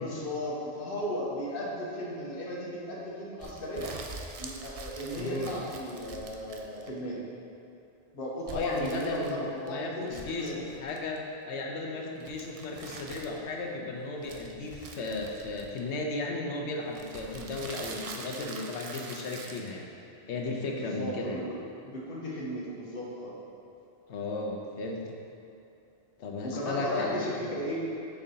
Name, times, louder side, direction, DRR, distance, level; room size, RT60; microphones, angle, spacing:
voice 1, 0.0-3.9 4.4-7.2 8.1-10.7 20.5-21.6 21.8-23.3 26.4-27.8, equal, 55° left, -4 dB, 1.2 m, -35 dB
sound 1, 3.4-7.1 8.5-9.7 10.0-11.2 12.2-13.5 14.2-16.0 16.9-19.7, right 4 dB, 65° right, 0.3 m, -44 dB
voice 2, 5.2-5.5 8.5-19.8 20.3-21.4 24.1-25.1 26.2-27.2, left 2 dB, 80° left, 0 dB, 1.0 m, -35 dB
7.2 x 4.7 x 2.8 m, 2.7 s
omnidirectional pair, 1.1 m